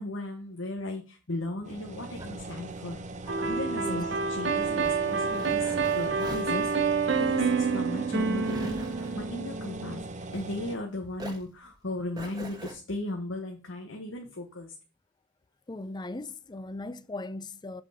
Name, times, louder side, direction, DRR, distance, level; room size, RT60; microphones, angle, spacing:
voice 1, 0.0-3.0 3.5-8.8 9.1-14.7, left 1 dB, 85° left, 1.4 m, -36 dB
sound 1, 1.6-10.8, right 2 dB, 40° right, 0.8 m, -41 dB
sound 2, 1.8-10.8 11.1-12.7, right 1 dB, 20° right, 1.3 m, -45 dB
sound 3, 3.3-10.1, right 5 dB, 70° right, 1.0 m, -28 dB
voice 2, 15.7-17.8, left 2 dB, 20° left, 0.5 m, -38 dB
8.0 x 4.9 x 5.0 m
head